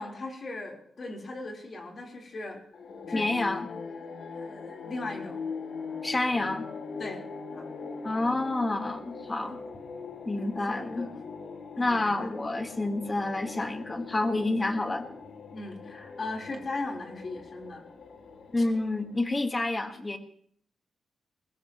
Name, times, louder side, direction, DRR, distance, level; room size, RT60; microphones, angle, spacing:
voice 1, 0.0-2.6 3.1-3.6 4.3-5.4 7.0-7.2 7.5-7.7 9.4-9.6 10.3-11.1 11.7-12.3 15.5-17.8, left 2 dB, 35° left, 0 dB, 4.1 m, -38 dB
sound 1, 2.7-19.3, left 4 dB, 70° left, 2.9 m, -41 dB
voice 2, 3.1-3.7 6.0-6.7 8.0-9.6 10.2-11.1 11.8-15.1 18.5-20.2, left 2 dB, 20° left, 6 dB, 1.6 m, -29 dB
21.5 x 21.0 x 3.1 m, 0.62 s
wide cardioid pair, 165°, 0 cm